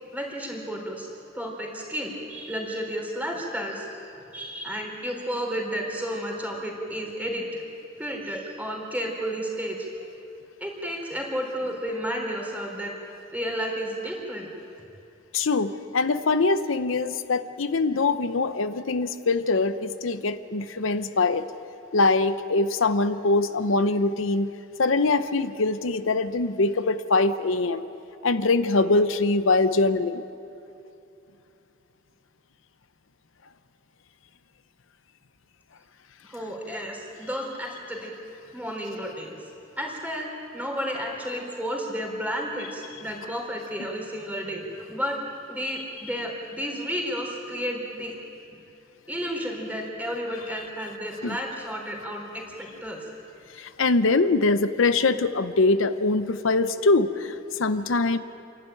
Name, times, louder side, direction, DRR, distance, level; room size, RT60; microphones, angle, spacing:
voice 1, 0.1-1.1 1.3-7.6 8.0-9.9 10.6-12.9 13.3-14.5 36.2-38.1 38.5-39.3 39.8-45.2 45.5-48.2 49.1-53.0, equal, 10° right, 0 dB, 3.9 m, -32 dB
voice 2, 15.3-21.5 21.9-24.5 24.8-27.8 28.2-30.2 51.2-51.4 53.6-58.2, left 3 dB, 90° left, 11 dB, 0.8 m, -23 dB
28.5 x 12.0 x 9.1 m, 2.7 s
head